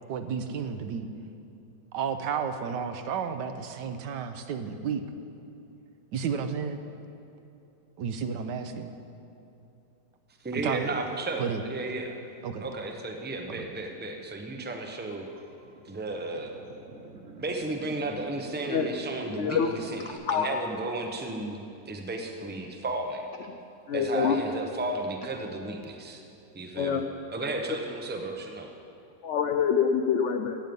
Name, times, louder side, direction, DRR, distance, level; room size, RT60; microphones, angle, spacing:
voice 1, 0.1-1.1 1.9-5.0 6.1-6.8 8.0-8.9 10.5-10.9 11.4-11.6 12.4-12.7 13.5-13.7, right 6 dB, 70° right, 8 dB, 1.3 m, -32 dB
voice 2, 10.4-12.1 12.6-15.3 15.8-16.5 17.4-21.6 21.8-23.3 23.9-26.2 26.5-27.0 27.3-28.7, right 2 dB, 10° right, 3 dB, 0.4 m, -33 dB
sound 1, 15.4-20.1, right 3 dB, 45° right, 1.3 m, -47 dB
voice 3, 19.4-19.7 20.3-20.5 23.9-24.3 26.8-27.0 29.2-30.6, left 7 dB, 90° left, 5 dB, 0.6 m, -25 dB
14.5 x 9.2 x 5.3 m, 2.8 s
omnidirectional pair, 2.0 m